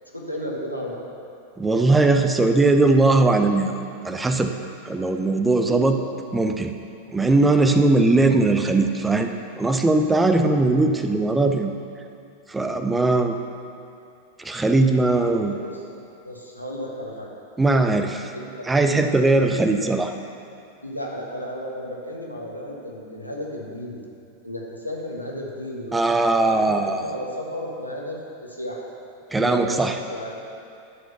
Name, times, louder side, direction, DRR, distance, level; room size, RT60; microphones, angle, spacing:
voice 1, 0.1-1.0 15.4-15.8 16.2-17.3 18.3-19.6 20.8-24.0 24.4-26.0 26.4-28.8 29.4-30.4, equal, 90° left, -3 dB, 1.5 m, -33 dB
voice 2, 1.6-3.8 4.0-4.5 4.8-6.0 6.3-6.7 7.1-9.3 9.6-11.7 12.5-13.4 14.4-15.5 17.6-18.3 18.7-20.1 25.9-27.0 29.3-30.0, right 2 dB, 10° right, 6 dB, 0.6 m, -19 dB
sound 1, 3.9-6.7 7.0-7.5 7.8-7.9 8.2-8.9 9.6-10.4 11.0-11.2, left 1 dB, 30° right, 2.8 m, -43 dB
12.0 x 5.2 x 6.9 m, 2.5 s
figure-of-eight pair, 90°, 0 cm